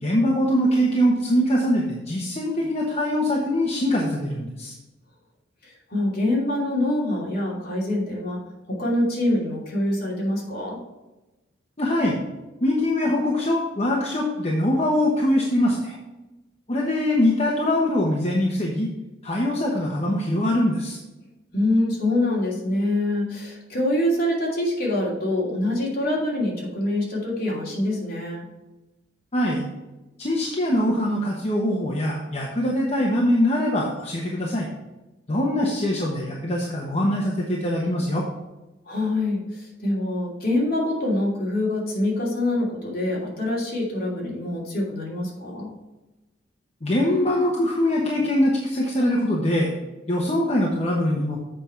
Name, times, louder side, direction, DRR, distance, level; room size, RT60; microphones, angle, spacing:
voice 1, 0.0-4.7 11.8-12.2 12.6-16.0 16.7-18.9 19.2-21.0 29.3-29.7 30.2-34.7 35.3-38.2 46.8-49.7 50.1-51.4, left 1 dB, 35° left, -3 dB, 1.1 m, -23 dB
voice 2, 5.6-8.4 8.7-10.8 21.5-28.4 38.9-45.7, left 1 dB, 55° left, -4 dB, 2.9 m, -25 dB
8.0 x 5.4 x 4.4 m, 1.0 s
head